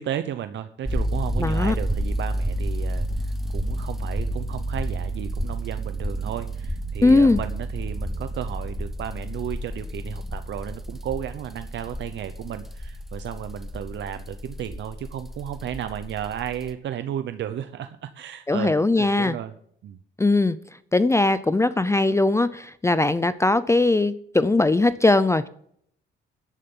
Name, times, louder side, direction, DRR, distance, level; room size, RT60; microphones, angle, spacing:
voice 1, 0.0-19.5 19.8-20.0, right 10 dB, 65° right, 10 dB, 0.8 m, -33 dB
sound 1, 0.8-16.7, right 1 dB, ahead, 0.9 m, -30 dB
voice 2, 1.4-1.8 7.0-7.4 18.5-19.3 20.2-20.6 20.9-25.5, left 2 dB, 15° left, 14 dB, 0.5 m, -20 dB
13.5 x 11.0 x 3.8 m, 0.66 s
cardioid pair, 90°, 20 cm